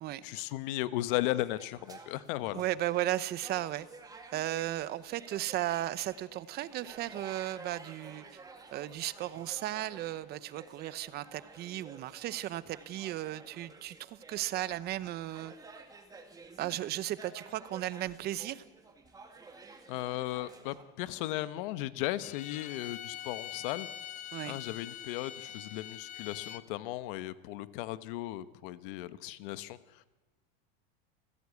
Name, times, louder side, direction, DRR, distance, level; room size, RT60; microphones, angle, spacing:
voice 1, 0.2-2.6 19.9-23.9 24.4-30.1, left 16 dB, 60° left, 13 dB, 1.2 m, -36 dB
sound 1, 1.1-20.8, right 4 dB, 10° right, 2.2 m, -53 dB
voice 2, 2.5-3.9 4.3-8.4 8.7-15.5 16.6-18.6 24.3-24.6, right 14 dB, 35° right, 16 dB, 0.9 m, -35 dB
Bowed string instrument, 22.2-26.6, left 11 dB, 25° left, 0.9 m, -44 dB
28.5 x 15.5 x 8.4 m, 1.2 s
supercardioid pair, 150°, 29 cm